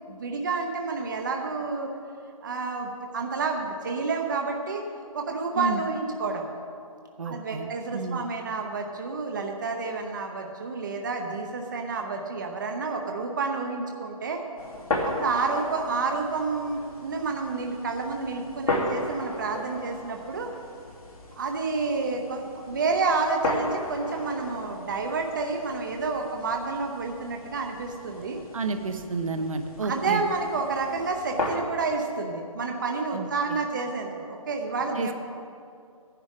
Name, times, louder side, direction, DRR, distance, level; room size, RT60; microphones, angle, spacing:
voice 1, 0.1-1.9 2.4-4.8 5.1-6.4 7.2-14.4 15.0-20.5 21.4-28.4 29.8-35.1, right 4 dB, 35° right, 3 dB, 0.8 m, -29 dB
voice 2, 7.2-8.2 28.5-30.2 33.1-33.6 34.9-35.1, right 3 dB, 65° right, 7 dB, 1.0 m, -31 dB
sound 1, 14.6-31.6, left 2 dB, 80° left, 2.6 m, -35 dB
14.5 x 10.5 x 3.7 m, 2.4 s
hypercardioid pair, 170°, 18 cm